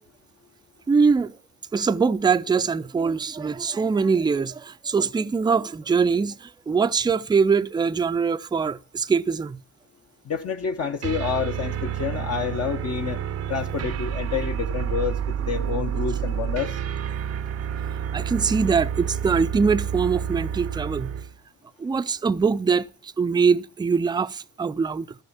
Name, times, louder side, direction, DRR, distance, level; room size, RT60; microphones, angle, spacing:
voice 1, 0.9-1.4 1.7-9.6 18.1-21.2 21.8-25.2, right 5 dB, 15° right, 0.4 m, -23 dB
voice 2, 10.2-13.2 13.5-16.8 21.8-21.9, left 7 dB, 55° left, 1.0 m, -28 dB
sound 1, 11.0-21.3, right 9 dB, 55° right, 0.6 m, -29 dB
13.0 x 6.3 x 7.0 m
cardioid pair, 90°, 30 cm